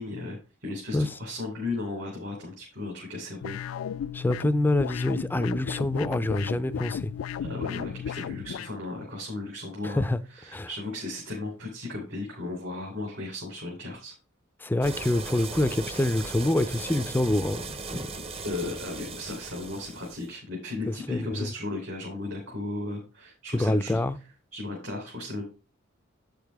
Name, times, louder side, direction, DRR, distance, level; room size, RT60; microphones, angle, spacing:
voice 1, 0.0-3.6 7.4-10.0 10.3-14.1 18.4-24.0 24.5-25.4, left 2 dB, 60° right, 3.3 m, -35 dB
sound 1, 3.4-8.7, left 8 dB, 85° left, 0.3 m, -35 dB
voice 2, 4.1-7.1 9.8-10.2 10.5-10.7 14.6-18.0 20.9-21.5 23.5-24.2, left 1 dB, 10° left, 0.4 m, -26 dB
sound 2, 14.8-20.3, right 4 dB, 30° right, 0.7 m, -38 dB
8.4 x 6.6 x 3.5 m
head